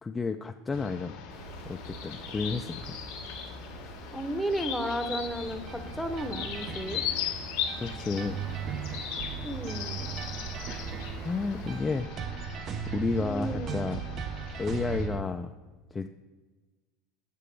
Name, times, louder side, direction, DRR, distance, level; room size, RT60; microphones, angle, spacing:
voice 1, 0.0-1.1 1.7-3.0 7.8-8.4 11.2-12.1 12.9-14.0 14.6-15.5 15.9-16.1, left 4 dB, 20° left, 6 dB, 0.3 m, -31 dB
sound 1, 0.7-15.1, left 8 dB, 75° left, 1.3 m, -39 dB
sound 2, 1.3-11.8, right 4 dB, 60° right, 1.6 m, -47 dB
voice 2, 4.1-7.0 9.4-10.2 13.2-13.9, right 1 dB, 5° left, 7 dB, 0.7 m, -33 dB
sound 3, 5.2-15.2, right 7 dB, 45° right, 0.5 m, -38 dB
7.5 x 6.8 x 3.3 m, 1.3 s
hypercardioid pair, 90°, 0 cm